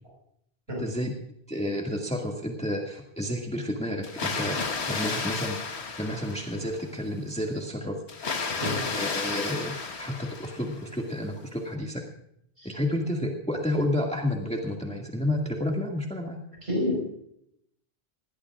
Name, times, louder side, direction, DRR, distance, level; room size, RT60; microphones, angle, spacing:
voice 1, 0.8-1.1 1.5-5.6 6.0-8.0 8.6-12.0 12.6-16.4, left 1 dB, 5° left, 0 dB, 1.9 m, -30 dB
Water, 4.0-6.8 8.1-10.9, left 4 dB, 90° left, 1.6 m, -32 dB
voice 2, 16.6-17.0, left 1 dB, 75° right, -1 dB, 5.2 m, -29 dB
20.5 x 18.0 x 2.4 m, 0.73 s
omnidirectional pair, 1.1 m